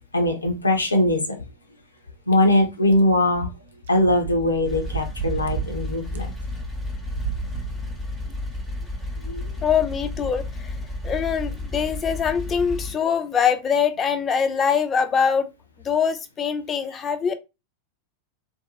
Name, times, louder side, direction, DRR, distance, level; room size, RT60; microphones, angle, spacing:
voice 1, 0.1-1.4 2.3-3.5 3.9-6.3 9.2-9.5, left 1 dB, 80° left, 0.5 m, -21 dB
sound 1, 2.3-2.4 2.9-3.0 3.9-4.0 4.2-5.7 6.1-6.2 7.0-7.7 8.3-8.4 9.0-9.1, right 9 dB, 60° right, 0.3 m, -31 dB
sound 2, 4.6-12.9, left 2 dB, ahead, 0.7 m, -32 dB
voice 2, 9.6-10.7 11.0-15.5 15.8-17.3, left 7 dB, 25° left, 0.4 m, -23 dB
2.5 x 2.2 x 2.9 m
figure-of-eight pair, 90°, 0 cm